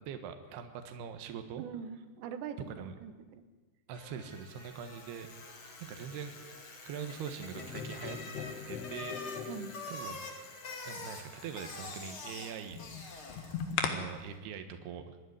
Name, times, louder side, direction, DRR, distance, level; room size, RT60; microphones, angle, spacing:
voice 1, 0.1-1.6 2.7-3.0 3.9-5.3 5.8-6.4 6.9-8.2 8.7-9.5 9.9-10.2 10.8-12.8 13.1-13.2 13.5-15.2, right 7 dB, 75° right, 7 dB, 3.3 m, -43 dB
voice 2, 1.6-3.5 9.5-9.7, right 7 dB, 90° right, 10 dB, 3.5 m, -43 dB
sound 1, 3.9-12.0, left 2 dB, 55° left, 5.2 m, -56 dB
Bicycle, 4.4-13.9, left 3 dB, 35° left, 2.6 m, -46 dB
sound 2, 7.5-9.9 12.7-13.9, left 7 dB, 75° left, 3.6 m, -38 dB
25.5 x 11.0 x 9.6 m, 1.3 s
omnidirectional pair, 4.9 m